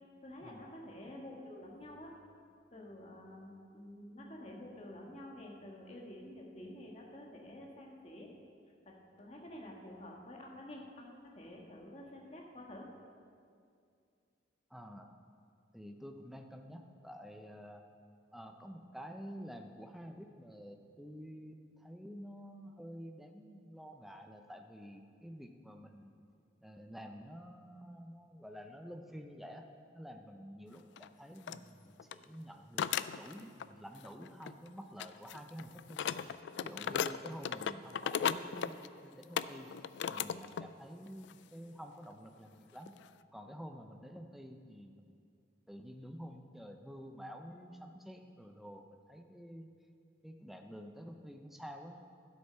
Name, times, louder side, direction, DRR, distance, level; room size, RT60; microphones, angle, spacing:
voice 1, 0.2-2.1 2.7-8.3 8.8-12.9, left 1 dB, 35° left, -1 dB, 1.5 m, -49 dB
voice 2, 14.7-15.1 15.7-17.8 18.3-26.1 26.6-29.7 29.9-32.8 33.1-36.1 36.6-39.7 40.1-42.9 43.3-45.3 45.7-49.7 50.2-52.0, equal, ahead, 4 dB, 0.6 m, -49 dB
sound 1, 31.0-31.1 31.5-31.6 32.0-32.2 32.8-33.7 34.0-34.7 35.0-40.7 41.1-41.3 42.0-42.1 42.8-43.1, left 8 dB, 70° left, 0.3 m, -37 dB
11.5 x 8.1 x 5.6 m, 2.3 s
head